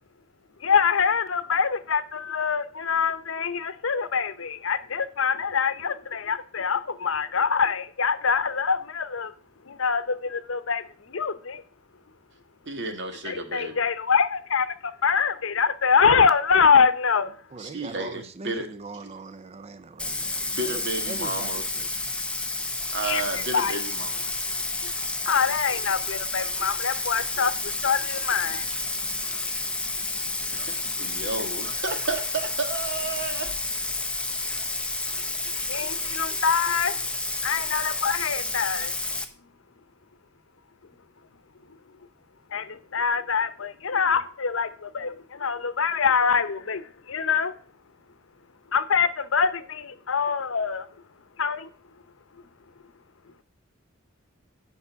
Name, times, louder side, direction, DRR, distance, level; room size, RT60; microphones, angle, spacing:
voice 1, 0.6-9.3 9.6-11.6 13.2-17.4 23.0-23.7 24.8-24.9 25.2-28.7 30.4-30.5 31.2-31.3 35.1-35.3 35.7-37.1 37.4-39.0 41.7-41.8 42.5-47.6 48.7-51.0 51.4-51.7 52.3-52.5 53.2-53.3, left 6 dB, 75° left, 0.8 m, -25 dB
voice 2, 12.6-13.7 17.6-18.7 20.5-21.6 22.9-24.1 30.5-33.5, right 2 dB, 60° right, 1.6 m, -32 dB
voice 3, 17.5-22.0, right 3 dB, 30° right, 0.5 m, -41 dB
Bathtub (filling or washing), 20.0-39.2, left 2 dB, 5° left, 0.8 m, -30 dB
8.5 x 5.5 x 6.8 m
head